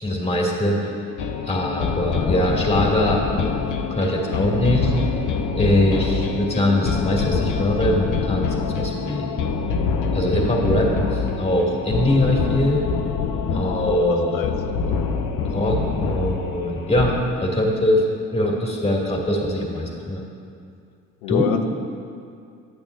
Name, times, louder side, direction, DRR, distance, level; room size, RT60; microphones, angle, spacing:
voice 1, 0.0-0.9 1.5-3.5 3.9-4.9 5.5-9.3 10.1-12.8 13.5-14.3 15.5-18.0 18.3-20.2 21.3-21.5, left 1 dB, 15° left, -2 dB, 2.2 m, -22 dB
sound 1, 1.2-17.2, left 5 dB, 50° left, 0.8 m, -25 dB
voice 2, 13.9-14.5 21.2-21.6, left 10 dB, 85° left, 5 dB, 0.5 m, -26 dB
11.0 x 8.7 x 2.6 m, 2.4 s
hypercardioid pair, 55°, 40 cm